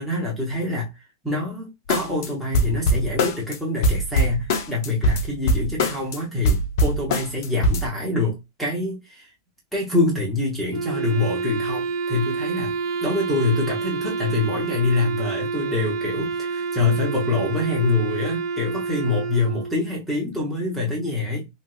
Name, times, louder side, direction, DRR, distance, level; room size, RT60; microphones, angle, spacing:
voice 1, 0.0-9.3 9.7-12.7 13.0-21.5, left 3 dB, 5° left, 0.6 m, -25 dB
sound 1, 1.9-2.3 2.5-3.6 3.8-6.2 6.5-7.9, equal, 50° left, 0.6 m, -21 dB
Wind instrument woodwind instrument, 10.7-20.0, right 4 dB, 65° right, 0.6 m, -28 dB
3.0 x 2.9 x 2.3 m
supercardioid pair, 180°, 2 cm